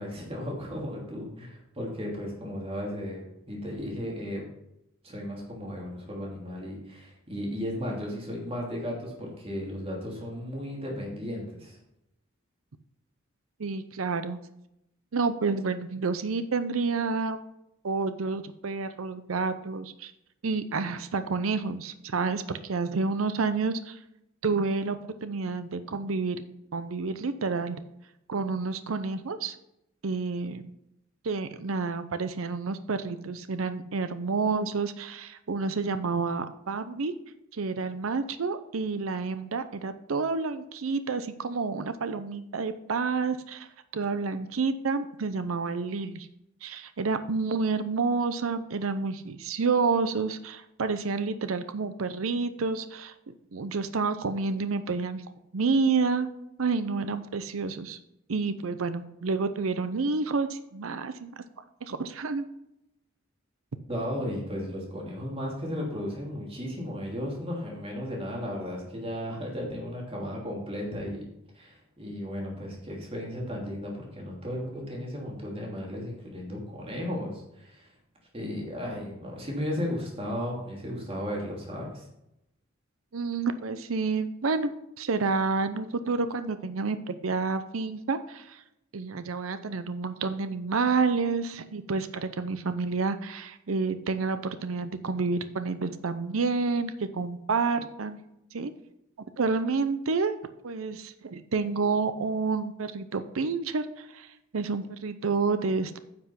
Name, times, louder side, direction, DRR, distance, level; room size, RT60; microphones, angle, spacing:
voice 1, 0.0-4.4 5.0-11.8 63.9-71.2 71.5-77.9 78.3-82.1, equal, 30° right, -2 dB, 2.8 m, -35 dB
voice 2, 13.6-14.4 15.1-17.4 17.8-20.1 20.4-24.0 24.4-26.4 26.7-27.8 28.3-29.5 30.0-30.6 31.2-37.1 37.5-43.7 43.9-46.3 46.6-53.1 53.5-55.2 55.5-56.3 56.6-58.0 58.3-61.4 61.8-62.5 83.1-84.7 85.0-88.6 88.9-98.2 98.5-98.7 99.4-100.3 100.6-104.3 104.5-106.0, right 4 dB, 85° right, 11 dB, 0.6 m, -29 dB
9.8 x 5.9 x 5.8 m, 0.83 s
head